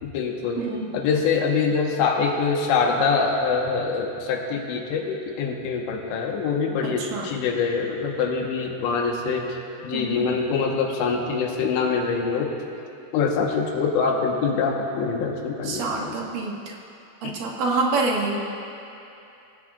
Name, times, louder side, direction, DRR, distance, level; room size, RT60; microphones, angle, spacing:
voice 1, 0.0-0.7 0.9-9.6 9.8-12.5 13.1-16.1 17.2-17.3, left 5 dB, 80° left, 1 dB, 3.4 m, -24 dB
voice 2, 0.6-1.0 7.0-7.3 9.9-10.3 15.6-16.8 17.2-18.4, right 3 dB, 60° right, -2 dB, 2.8 m, -27 dB
26.0 x 17.0 x 2.5 m, 2.8 s
omnidirectional pair, 5.1 m